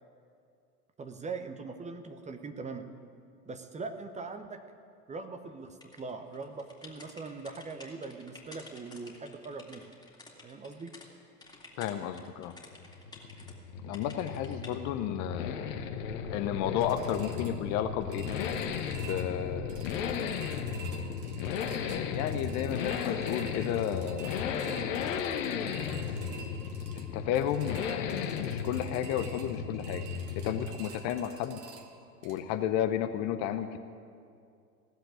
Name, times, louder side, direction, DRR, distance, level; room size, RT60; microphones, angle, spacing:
voice 1, 1.0-2.9 3.5-4.6 5.1-9.9 10.4-10.9, right 4 dB, 15° right, 7 dB, 0.9 m, -41 dB
sound 1, 5.8-11.1 11.4-13.5 13.9-14.8, left 3 dB, 10° left, 2.4 m, -52 dB
voice 2, 11.8-12.5 13.8-15.6 16.3-18.3 19.0-20.0 21.8-24.5 27.1-30.1 30.4-31.6 32.2-33.8, left 10 dB, 35° left, 10 dB, 0.7 m, -32 dB
Accelerating revving vroom, 12.7-30.9 31.2-31.3, left 7 dB, 55° left, 1.1 m, -35 dB
sound 2, 15.7-32.4, right 5 dB, 40° right, 1.8 m, -49 dB
16.5 x 7.7 x 10.0 m, 2.4 s
figure-of-eight pair, 80°, 46 cm